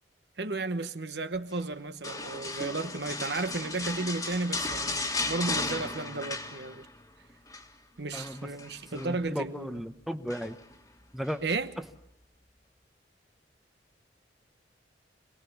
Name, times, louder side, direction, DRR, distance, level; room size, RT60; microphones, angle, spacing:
voice 1, 0.4-6.9 8.0-9.8 11.4-11.7, right 3 dB, 65° right, 1.1 m, -33 dB
sound 1, 2.0-7.0 7.3-7.7 8.1-9.1 10.3-10.7 11.2-11.4, left 3 dB, 20° left, 1.7 m, -35 dB
voice 2, 8.1-8.5 8.9-10.6 11.1-11.4 11.8-11.9, equal, ahead, 0.8 m, -35 dB
25.5 x 19.0 x 7.1 m
head